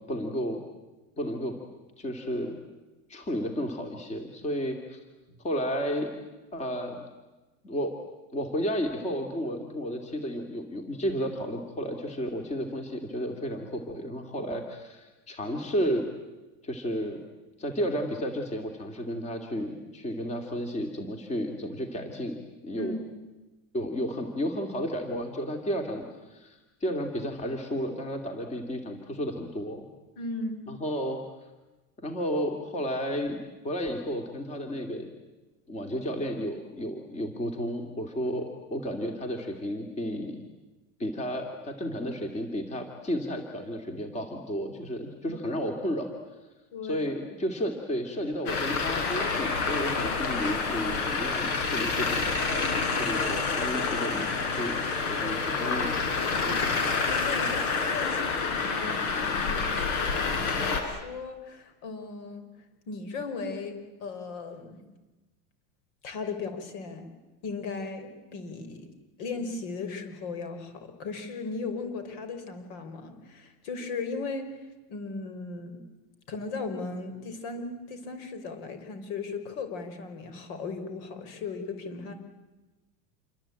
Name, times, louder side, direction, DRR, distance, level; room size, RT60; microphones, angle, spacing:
voice 1, 0.1-0.6 1.2-1.6 2.0-2.6 3.1-5.0 5.4-6.1 6.5-7.0 7.6-8.0 8.3-16.0 16.6-17.3 17.6-22.4 22.6-23.0 23.7-29.9 30.7-31.2 32.0-35.1 35.7-40.4 41.0-46.1 46.8-52.3 53.0-54.8 55.1-56.0 56.4-56.7, equal, 15° left, 4 dB, 2.4 m, -32 dB
voice 2, 22.8-23.1 30.2-30.7 45.2-45.5 46.7-47.1 55.2-55.8 57.1-62.4 62.9-63.7 64.0-64.8 66.0-67.1 67.4-68.9 69.2-75.8 76.3-82.1, left 4 dB, 55° left, 8 dB, 5.3 m, -37 dB
Traffic noise roadway noise, 48.5-60.8, left 4 dB, 85° left, 5.9 m, -28 dB
28.0 x 24.0 x 8.9 m, 1.1 s
cardioid pair, 175°, 42 cm